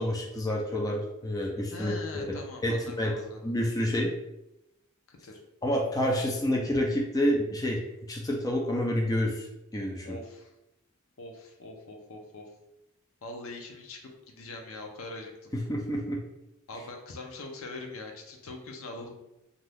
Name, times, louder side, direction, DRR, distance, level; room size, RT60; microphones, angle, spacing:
voice 1, 0.0-3.1 3.4-4.1 5.6-7.8 8.1-9.5 9.7-10.2 15.5-16.2, equal, 15° left, -1 dB, 0.4 m, -28 dB
voice 2, 1.7-3.5 5.1-5.3 10.0-10.5 11.2-12.5 13.2-14.0 14.3-15.5 16.7-19.2, left 2 dB, 75° left, 2 dB, 0.6 m, -42 dB
2.6 x 2.3 x 3.3 m, 0.90 s
head